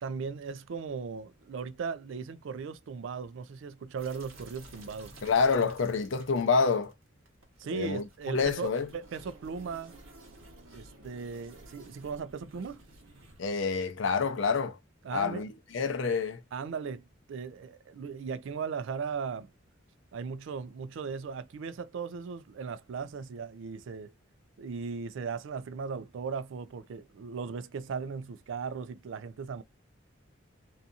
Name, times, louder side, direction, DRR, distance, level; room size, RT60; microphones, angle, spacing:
voice 1, 0.0-5.1 7.6-9.9 10.7-12.8 15.0-15.4 16.5-19.5 20.1-24.1 24.6-29.6, right 5 dB, 65° right, 0.3 m, -37 dB
sound 1, 4.0-13.5, right 2 dB, 85° right, 1.0 m, -53 dB
voice 2, 5.2-6.9 7.7-8.9 13.4-14.8 15.1-16.4, left 5 dB, 65° left, 0.5 m, -28 dB
2.7 x 2.4 x 2.5 m
head